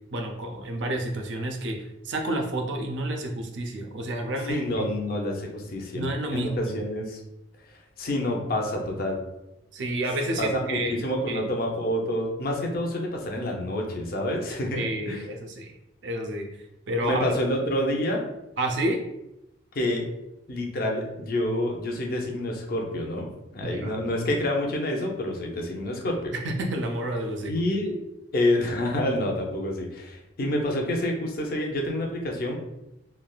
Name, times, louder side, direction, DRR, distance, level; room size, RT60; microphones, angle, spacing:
voice 1, 0.1-1.8 2.0-4.8 5.9-6.8 9.7-11.0 11.3-11.4 14.7-15.7 16.0-16.5 16.9-17.3 18.6-19.0 23.6-23.9 26.3-27.6, right 1 dB, 75° right, 3 dB, 0.5 m, -30 dB
voice 2, 4.5-7.2 8.0-9.2 10.4-15.2 17.0-18.2 19.7-20.1 20.5-23.3 23.5-26.3 27.5-28.0 28.3-32.6, left 1 dB, 55° left, 1 dB, 0.6 m, -28 dB
3.2 x 2.3 x 2.3 m, 0.89 s
head